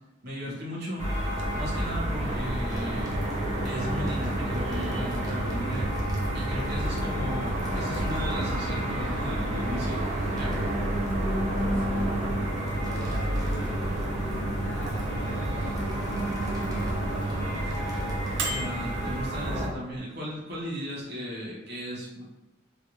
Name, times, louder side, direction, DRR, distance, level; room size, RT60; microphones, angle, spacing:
voice 1, 0.2-1.1 1.5-3.2 3.6-5.9 6.3-10.0 10.3-10.6 18.5-22.3, equal, 55° right, -6 dB, 1.2 m, -36 dB
sound 1, 1.0-19.7, equal, 35° right, 0.9 m, -30 dB
Microwave oven, 1.2-20.0, right 2 dB, 70° right, 0.6 m, -36 dB
sound 2, 2.5-20.1 20.6-21.0, equal, 20° right, 0.5 m, -43 dB
voice 2, 11.7-14.1 14.6-15.9 16.4-18.6, equal, 60° left, -6 dB, 0.6 m, -44 dB
3.1 x 2.6 x 3.0 m, 1.0 s
head